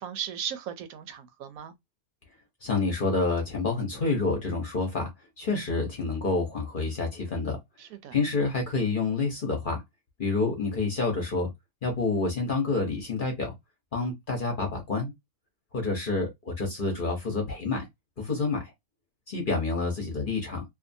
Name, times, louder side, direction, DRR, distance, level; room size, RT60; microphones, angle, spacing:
voice 1, 0.0-1.7 7.8-8.1, right 9 dB, 75° right, 1.0 m, -37 dB
voice 2, 2.6-5.1 5.4-7.6 8.1-9.8 10.2-11.5 11.8-13.5 13.9-15.1 15.7-17.9 18.2-18.7 19.3-20.6, left 3 dB, 40° left, 0.8 m, -28 dB
2.6 x 2.4 x 2.5 m
omnidirectional pair, 1.6 m